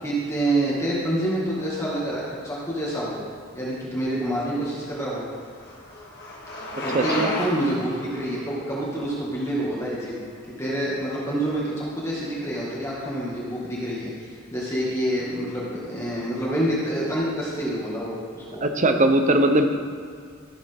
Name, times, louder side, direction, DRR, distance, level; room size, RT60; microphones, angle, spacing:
voice 1, 0.0-3.2 3.5-5.3 6.8-10.2 10.6-18.6, right 1 dB, 15° left, -7 dB, 2.0 m, -27 dB
Bicycle, 4.5-10.5, left 1 dB, 50° left, 1.8 m, -34 dB
voice 2, 6.9-7.3 18.6-19.7, right 1 dB, 35° right, 6 dB, 0.7 m, -20 dB
14.5 x 7.2 x 3.6 m, 2.1 s
head